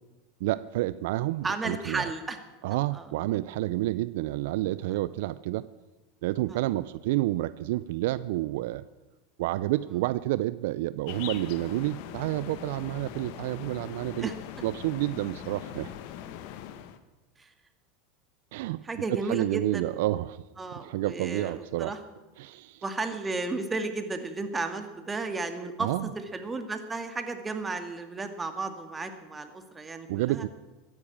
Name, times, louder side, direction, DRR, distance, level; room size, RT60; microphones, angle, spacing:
voice 1, 0.4-2.1 2.6-5.7 6.2-8.8 9.4-14.3 14.6-15.9 18.5-18.8 19.1-20.4 20.7-21.9 22.4-22.8 25.8-26.1 30.1-30.5, right 16 dB, 70° right, 17 dB, 0.4 m, -29 dB
voice 2, 1.4-2.4 2.9-3.1 6.5-6.6 9.9-10.0 14.2-14.3 17.4-17.5 18.8-20.0 20.6-22.0 22.8-30.5, right 3 dB, 15° right, 7 dB, 2.1 m, -34 dB
sound 1, 11.1-17.0, left 11 dB, 65° left, 1.2 m, -41 dB
14.5 x 10.5 x 8.6 m, 1.1 s
hypercardioid pair, 100°, 0 cm